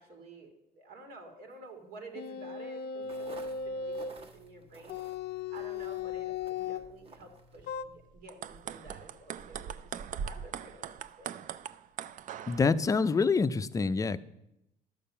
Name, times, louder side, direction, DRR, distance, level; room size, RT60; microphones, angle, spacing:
voice 1, 0.0-5.0 5.5-11.4, right 3 dB, 75° right, 4 dB, 2.2 m, -51 dB
sound 1, 2.1-4.2 4.9-6.9 7.7-7.8, left 6 dB, 70° left, 0.5 m, -37 dB
sound 2, 3.0-8.1, right 2 dB, 35° right, 1.3 m, -54 dB
sound 3, 8.2-12.7, right 8 dB, 50° right, 0.4 m, -40 dB
voice 2, 12.5-14.2, left 4 dB, 20° left, 13 dB, 0.4 m, -26 dB
12.0 x 6.9 x 5.5 m, 0.84 s
cardioid pair, 110°, 17 cm